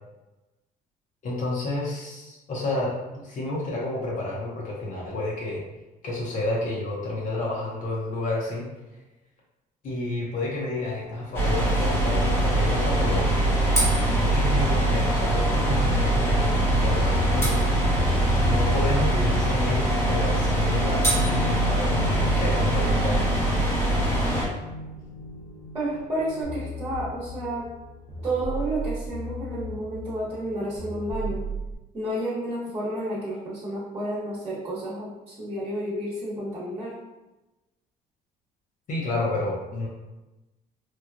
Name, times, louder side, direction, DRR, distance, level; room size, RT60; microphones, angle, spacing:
voice 1, 1.2-5.6 6.0-8.7 9.8-13.3 14.2-17.7 18.4-23.3 38.9-39.9, left 2 dB, 50° left, -4 dB, 0.7 m, -30 dB
sound 1, 10.7-27.9, left 2 dB, 90° left, 1.4 m, -36 dB
sound 2, 11.3-24.5, right 1 dB, 15° left, 0.9 m, -23 dB
voice 2, 25.7-27.7 28.2-31.4 31.9-37.0, right 1 dB, 25° right, -8 dB, 1.0 m, -31 dB
sound 3, 26.4-31.8, right 2 dB, 40° right, 0.6 m, -36 dB
3.0 x 2.3 x 2.4 m, 1.1 s
cardioid pair, 110°, 17 cm